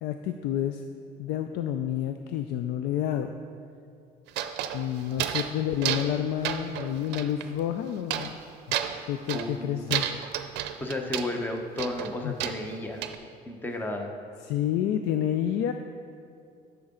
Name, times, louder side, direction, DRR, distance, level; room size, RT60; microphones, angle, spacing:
voice 1, 0.0-0.8 1.2-3.3 4.7-8.4 9.1-10.1 12.2-12.4 14.4-15.7, left 10 dB, 85° left, 7 dB, 0.4 m, -29 dB
sound 1, 4.3-5.6 5.8-6.2 6.4-7.5 8.1-8.4 8.7-9.5 9.9-11.3 11.8-13.2, right 11 dB, 90° right, 0.5 m, -31 dB
voice 2, 9.3-10.1 10.8-13.0 13.4-14.1, left 1 dB, 10° left, 3 dB, 0.9 m, -33 dB
10.5 x 7.0 x 3.8 m, 2.3 s
cardioid pair, 110°, 17 cm